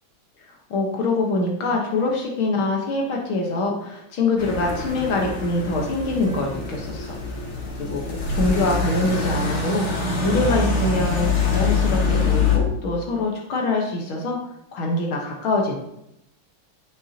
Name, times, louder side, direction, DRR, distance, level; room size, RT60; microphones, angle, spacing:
voice 1, 0.7-7.2 7.8-14.4 14.7-15.8, left 2 dB, 80° left, 0 dB, 2.1 m, -24 dB
sound 1, 4.4-12.6, left 4 dB, 40° left, 1.4 m, -24 dB
9.9 x 8.3 x 2.9 m, 0.80 s
omnidirectional pair, 2.2 m